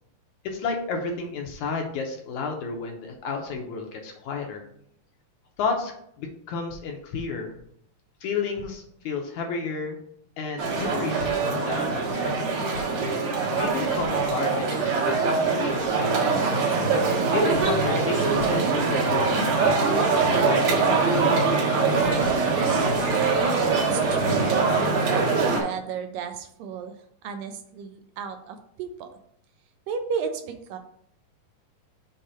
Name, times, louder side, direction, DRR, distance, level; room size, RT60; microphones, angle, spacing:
voice 1, 0.4-4.6 5.6-5.9 6.2-7.6 8.2-10.0 10.4-12.7 13.6-16.4 17.3-19.9 20.4-21.4, left 4 dB, 70° left, 2 dB, 2.0 m, -32 dB
sound 1, 10.6-25.6, right 4 dB, 60° right, 2.3 m, -23 dB
voice 2, 23.8-24.5 25.1-27.0 27.2-29.1 29.9-30.8, right 6 dB, 80° right, 7 dB, 2.4 m, -33 dB
6.7 x 3.2 x 5.6 m, 0.67 s
omnidirectional pair, 3.9 m